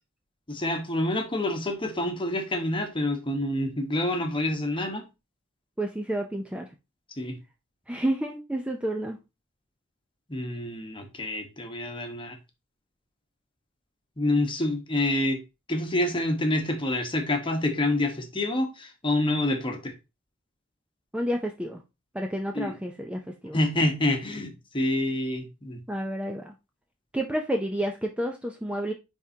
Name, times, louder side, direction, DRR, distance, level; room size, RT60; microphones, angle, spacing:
voice 1, 0.5-5.1 7.2-7.4 10.3-12.4 14.2-15.4 15.7-19.9 22.5-22.8 23.5-25.8, left 1 dB, 25° left, 1.2 m, -27 dB
voice 2, 5.8-6.7 7.9-9.2 21.1-21.8 22.1-23.6 25.9-26.5 27.1-28.9, right 1 dB, 5° right, 0.5 m, -30 dB
9.4 x 3.6 x 2.8 m
head